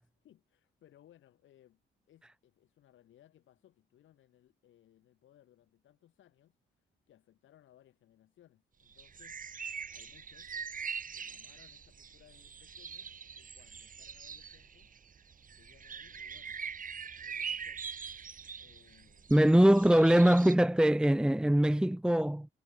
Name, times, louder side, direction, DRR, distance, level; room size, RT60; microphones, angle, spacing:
voice 1, 0.0-1.8 2.1-9.4 9.9-10.5 11.1-14.9 15.5-16.6 17.0-17.8 18.6-19.4, left 12 dB, 75° left, 7.5 m, -64 dB
sound 1, 8.9-20.5, right 6 dB, 45° right, 3.7 m, -43 dB
voice 2, 19.3-22.5, right 1 dB, 5° right, 0.7 m, -23 dB
cardioid pair, 90°, 20 cm